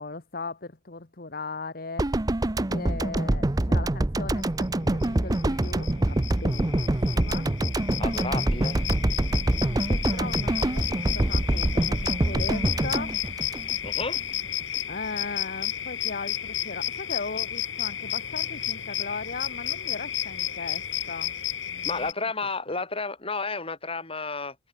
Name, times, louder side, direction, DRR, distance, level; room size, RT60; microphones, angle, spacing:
voice 1, 0.0-2.0 2.7-7.5 9.7-13.2 14.9-21.4 21.7-22.1 22.7-22.8, left 3 dB, 50° left, 1.4 m, -38 dB
sound 1, 2.0-14.2 14.4-14.6, right 1 dB, 20° right, 0.6 m, -25 dB
sound 2, 5.0-5.1 5.3-22.1, left 11 dB, 75° left, 6.4 m, -32 dB
voice 2, 8.0-8.8 13.8-14.2 21.8-24.6, left 3 dB, 30° left, 5.3 m, -31 dB
head